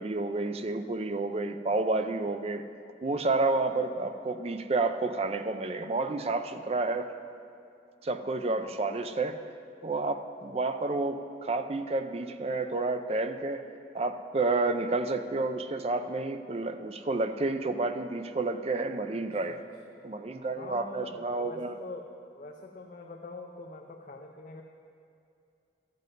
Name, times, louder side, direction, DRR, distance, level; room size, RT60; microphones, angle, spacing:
voice 1, 0.0-2.6 3.0-7.1 8.0-9.4 9.8-13.6 13.9-19.6 20.0-21.8, right 3 dB, 35° right, 9 dB, 0.4 m, -30 dB
voice 2, 19.1-19.6 19.9-20.0 20.6-24.6, left 3 dB, 45° left, 2 dB, 0.6 m, -45 dB
13.0 x 7.6 x 5.3 m, 2.5 s
head